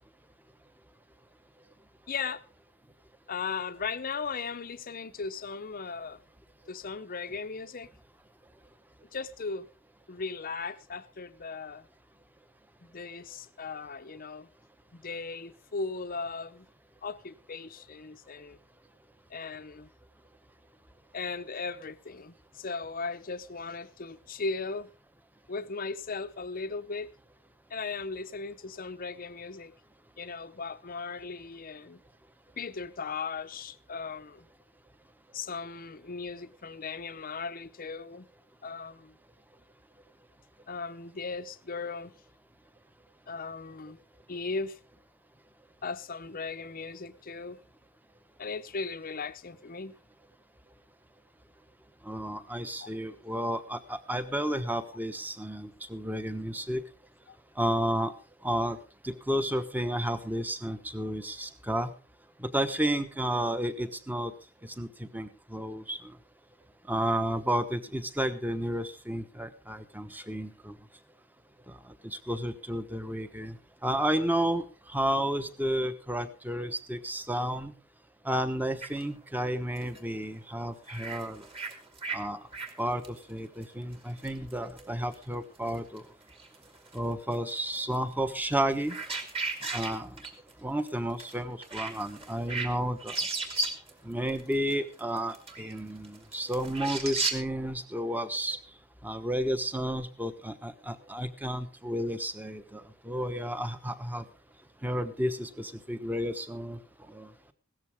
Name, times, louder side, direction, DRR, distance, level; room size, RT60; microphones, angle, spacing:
voice 1, 2.1-2.4 3.3-6.2 6.7-7.9 9.1-9.7 10.1-11.9 12.8-14.5 14.9-16.7 17.0-18.6 19.3-19.9 21.1-24.9 25.5-27.1 27.7-29.7 30.2-32.0 32.6-34.5 35.3-38.3 38.6-39.1 40.7-42.1 43.3-44.0 44.3-44.8 45.8-47.6 48.4-49.9 52.8-52.9, left 4 dB, 40° left, 0.7 m, -37 dB
voice 2, 52.1-56.8 57.6-58.1 58.4-58.8 59.0-61.9 62.4-64.3 64.8-64.9 65.1-66.0 66.9-70.7 72.3-73.6 73.8-74.6 74.9-77.7 78.3-81.4 82.1-82.4 82.8-86.0 86.9-88.9 89.7-90.1 90.6-93.1 94.0-98.6 99.0-102.8 103.1-104.2 104.8-106.8 107.1-107.3, right 1 dB, 10° right, 1.0 m, -31 dB
sound 1, 78.8-79.0 79.8-80.0 80.9-82.2 82.5-82.7 83.0-83.2 83.6-84.5 84.8-85.2 85.5-86.0 86.3-87.0 87.3-88.0 88.5-90.5 90.9-91.0 91.2-91.3 91.6-92.7 93.0-93.9 94.3-97.4, right 3 dB, 25° right, 2.2 m, -35 dB
16.5 x 13.5 x 3.5 m
head